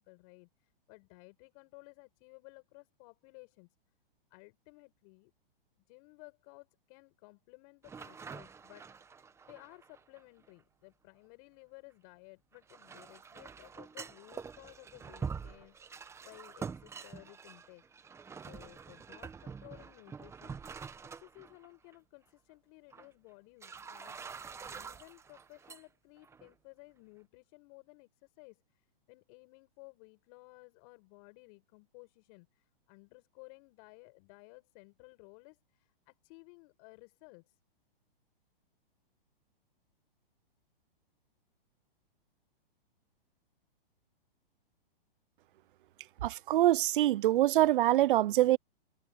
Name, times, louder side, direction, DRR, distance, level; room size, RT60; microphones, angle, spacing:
voice 1, 0.0-3.7 4.3-5.3 5.9-8.9 9.5-17.8 18.4-20.6 21.1-24.4 24.7-37.6, left 32 dB, 40° left, 7.7 m, -56 dB
sound 1, 7.8-10.5 12.5-21.7 21.9-22.0 22.9-23.1 23.6-25.8 26.2-26.5, right 6 dB, 10° right, 1.1 m, -46 dB
voice 2, 46.2-48.6, right 14 dB, 60° right, 0.5 m, -25 dB
hypercardioid pair, 145°, 29 cm